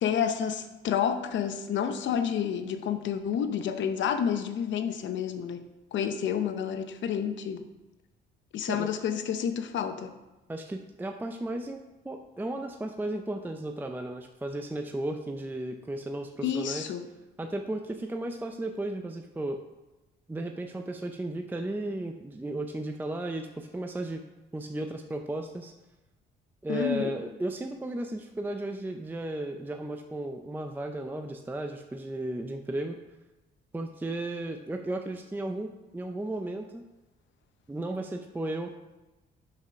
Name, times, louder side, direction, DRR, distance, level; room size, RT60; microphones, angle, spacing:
voice 1, 0.0-5.6 5.9-7.7 8.5-10.2 16.4-17.0 26.7-27.1, left 8 dB, 70° left, 8 dB, 0.7 m, -29 dB
voice 2, 10.5-16.9 17.4-19.6 20.3-24.2 24.5-25.7 26.6-33.0 33.7-36.8 37.7-38.7, right 1 dB, 10° right, 5 dB, 0.5 m, -34 dB
5.7 x 4.8 x 5.7 m, 1.0 s
cardioid pair, 90°, 20 cm